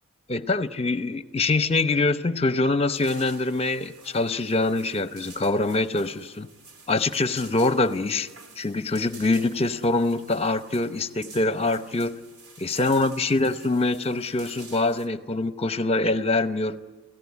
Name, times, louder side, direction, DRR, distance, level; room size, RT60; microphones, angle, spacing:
voice 1, 0.3-6.5 6.9-8.3 8.6-12.2 12.6-16.8, left 2 dB, 25° left, 0.8 m, -24 dB
sound 1, 2.9-15.1, right 4 dB, 85° right, 2.7 m, -49 dB
30.0 x 17.0 x 9.6 m
head